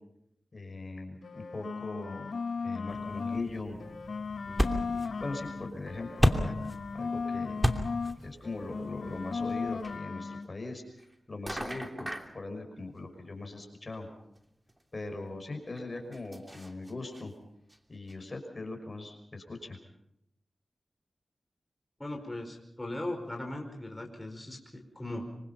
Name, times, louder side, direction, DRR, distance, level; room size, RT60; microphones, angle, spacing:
voice 1, 0.5-2.3 2.6-3.8 4.5-6.6 6.9-7.7 8.2-10.8 11.3-12.1 12.3-14.1 14.9-17.3 17.9-19.8, left 2 dB, 45° left, 4 dB, 5.7 m, -40 dB
sound 1, 1.1-3.5 3.8-8.2 8.4-10.5, left 5 dB, 80° left, 1.5 m, -36 dB
sound 2, 2.9-10.0, equal, ahead, 2.8 m, -33 dB
sound 3, 9.5-9.6 9.8-9.9 11.0-11.1 11.4-12.3 13.9-14.0 14.3-14.4 14.7-14.8 15.8-17.2 17.7-17.8 18.1-18.2, right 1 dB, 20° right, 3.1 m, -41 dB
voice 2, 22.0-25.2, left 1 dB, 20° left, 1 dB, 5.1 m, -38 dB
26.0 x 24.0 x 5.8 m, 0.76 s
cardioid pair, 50°, 0 cm